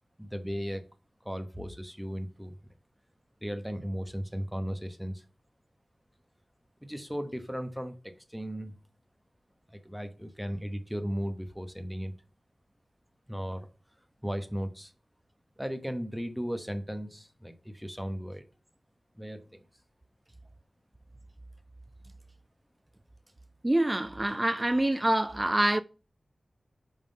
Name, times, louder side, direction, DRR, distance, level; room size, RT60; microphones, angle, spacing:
voice 1, 0.2-0.8 1.2-2.6 3.4-5.2 6.8-8.8 9.7-12.1 13.3-13.7 14.2-14.9 15.6-18.4 19.1-19.6, equal, ahead, 1.0 m, -36 dB
voice 2, 23.6-25.8, right 1 dB, 20° right, 0.3 m, -26 dB
5.4 x 3.8 x 5.2 m
wide cardioid pair, 80°, 0 cm